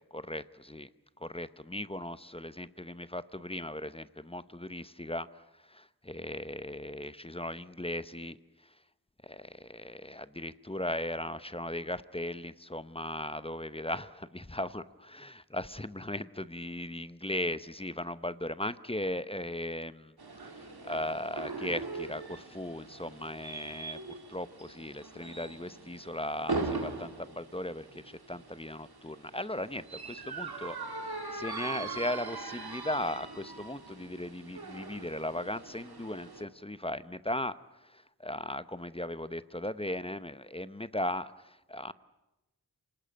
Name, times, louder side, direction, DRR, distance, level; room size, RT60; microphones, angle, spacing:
voice 1, 0.1-0.9 1.2-8.4 9.2-20.1 20.5-30.8 31.0-37.6 37.8-41.9, left 1 dB, 15° left, 14 dB, 0.8 m, -37 dB
sound 1, 20.2-36.4, right 3 dB, 80° right, 2.3 m, -41 dB
26.5 x 19.0 x 9.0 m, 1.0 s
wide cardioid pair, 45°, 37 cm